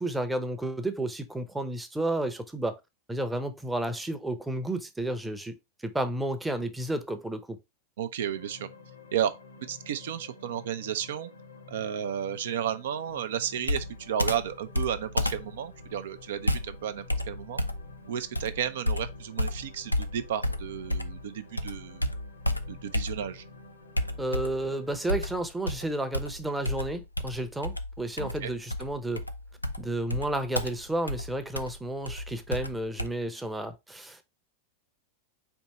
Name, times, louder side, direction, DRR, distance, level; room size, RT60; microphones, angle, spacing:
voice 1, 0.0-2.8 3.1-5.6 5.8-7.6 24.2-29.2 29.8-34.2, right 1 dB, 5° right, 0.7 m, -32 dB
voice 2, 8.0-8.7 9.1-9.4 9.7-11.3 11.7-17.6 18.1-22.0 22.7-23.4 28.2-28.5, right 9 dB, 60° right, 0.5 m, -33 dB
sound 1, 8.2-25.4, left 4 dB, 70° left, 0.8 m, -51 dB
Computer keyboard, 13.6-21.3 21.6-23.5 24.0-24.7 25.1-33.1, left 1 dB, 85° left, 0.4 m, -32 dB
4.5 x 2.8 x 4.1 m
figure-of-eight pair, 90°, 0 cm